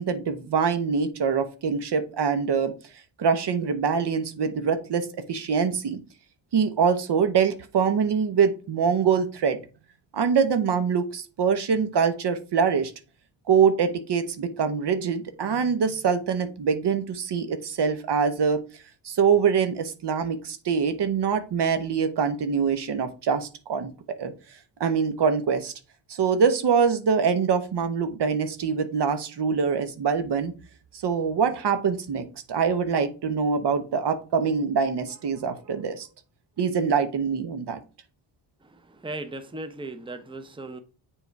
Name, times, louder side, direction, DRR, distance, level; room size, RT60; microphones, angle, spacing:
voice 1, 0.0-2.7 3.2-6.0 6.5-9.6 10.1-12.9 13.5-18.6 19.0-23.9 24.2-24.3 24.8-25.7 26.1-30.5 31.0-36.1 36.6-37.8, right 6 dB, 55° right, 1.1 m, -24 dB
voice 2, 38.9-40.8, right 2 dB, 10° right, 0.8 m, -37 dB
6.9 x 3.8 x 4.6 m
cardioid pair, 65°, 47 cm